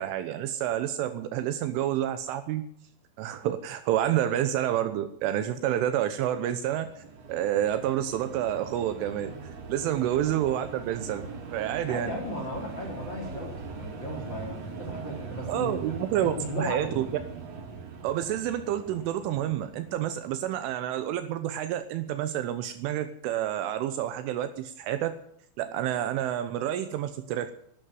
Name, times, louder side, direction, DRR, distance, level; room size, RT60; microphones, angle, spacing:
voice 1, 0.0-2.7 3.2-7.0 7.3-9.4 9.7-12.1 15.5-17.1 18.0-25.2 25.6-27.5, right 11 dB, 80° right, 10 dB, 3.3 m, -29 dB
sound 1, 6.2-20.7, right 4 dB, 45° right, 2.4 m, -41 dB
voice 2, 11.8-15.9 16.2-17.1, left 1 dB, 25° left, 1 dB, 3.2 m, -36 dB
12.5 x 12.5 x 9.2 m, 0.66 s
omnidirectional pair, 5.8 m